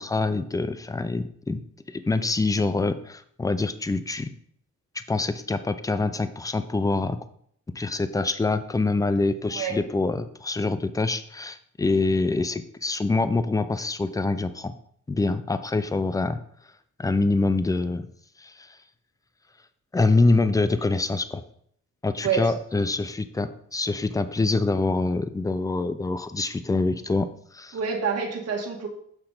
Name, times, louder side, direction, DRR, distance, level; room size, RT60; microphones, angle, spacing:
voice 1, 0.0-1.6 1.9-4.3 5.1-7.2 7.7-14.7 15.1-16.4 17.0-18.1 18.4-18.8 19.9-21.4 22.0-27.8, left 3 dB, 10° left, 12 dB, 0.5 m, -25 dB
voice 2, 9.5-9.8 22.2-22.5 27.7-28.9, right 6 dB, 55° right, 0 dB, 1.7 m, -27 dB
6.8 x 5.7 x 3.9 m, 0.65 s
cardioid pair, 90°, 30 cm